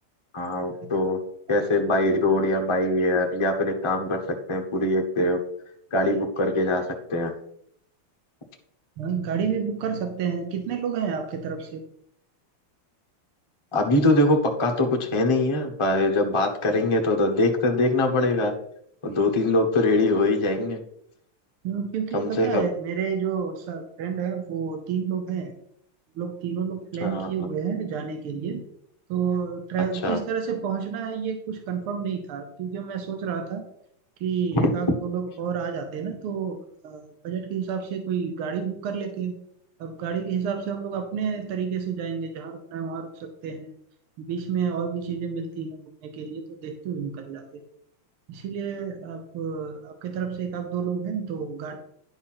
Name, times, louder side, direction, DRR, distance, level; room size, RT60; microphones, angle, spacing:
voice 1, 0.3-1.2 1.5-4.2 4.5-5.4 5.9-7.3 13.7-18.5 19.0-20.8 22.1-22.7 27.0-27.5 30.0-30.2 34.5-34.7, left 2 dB, 30° left, 1 dB, 0.5 m, -23 dB
voice 2, 9.0-11.8 21.6-25.5 26.2-28.6 29.1-33.7 34.2-36.6 36.8-39.4 39.8-43.7 44.2-45.8 46.0-47.6 48.3-51.8, right 6 dB, 85° right, 5 dB, 1.8 m, -30 dB
10.5 x 4.3 x 5.9 m, 0.72 s
omnidirectional pair, 2.3 m